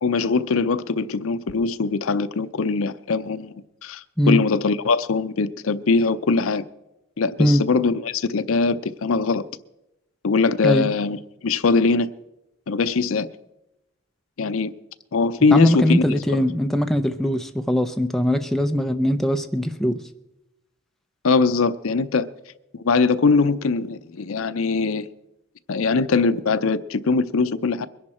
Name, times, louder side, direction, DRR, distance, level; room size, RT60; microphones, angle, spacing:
voice 1, 0.0-6.6 7.2-9.5 10.2-12.1 12.7-13.3 14.4-14.7 15.1-16.4 21.2-22.3 22.7-25.1 25.7-27.9, left 4 dB, 75° left, 0.6 m, -21 dB
voice 2, 15.5-20.0, equal, ahead, 0.6 m, -21 dB
22.0 x 11.0 x 4.3 m
head